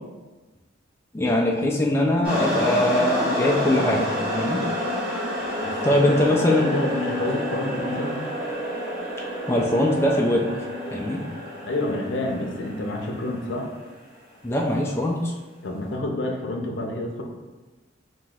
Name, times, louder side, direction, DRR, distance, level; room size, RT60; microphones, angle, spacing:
voice 1, 1.1-4.7 5.8-6.8 9.5-10.5 10.9-11.2 14.4-15.3, left 1 dB, 15° left, -2 dB, 0.3 m, -22 dB
sound 1, 2.2-13.7, left 1 dB, 10° right, 1.1 m, -29 dB
voice 2, 5.6-6.2 6.6-8.3 11.6-13.7 15.6-17.2, left 2 dB, 75° left, 1 dB, 0.6 m, -29 dB
5.7 x 2.7 x 2.4 m, 1.2 s
head